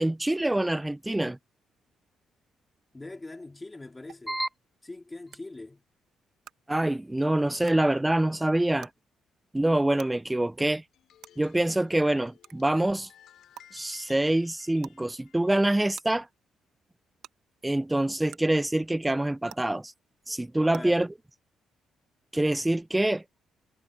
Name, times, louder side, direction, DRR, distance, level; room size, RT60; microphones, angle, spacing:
voice 1, 0.0-1.4 4.3-4.5 6.7-8.9 9.5-10.8 11.4-13.1 13.7-16.3 17.6-19.9 20.3-21.1 22.3-23.2, right 1 dB, 10° right, 0.3 m, -25 dB
voice 2, 2.9-4.4 4.8-5.8 20.6-21.0, left 2 dB, 20° left, 3.2 m, -42 dB
sound 1, 4.1-4.2 5.3-5.4 6.4-6.5 7.6-7.7 8.8-8.9 10.0-10.1 11.2-11.3 12.4-12.5 13.5-13.6 14.8-15.0 15.9-16.0 17.2-17.3 18.3-18.4 19.5-19.6 20.7-20.8, right 12 dB, 80° right, 0.9 m, -45 dB
sound 2, 10.9-15.7, left 10 dB, 75° left, 2.7 m, -57 dB
cardioid pair, 90°, 0 cm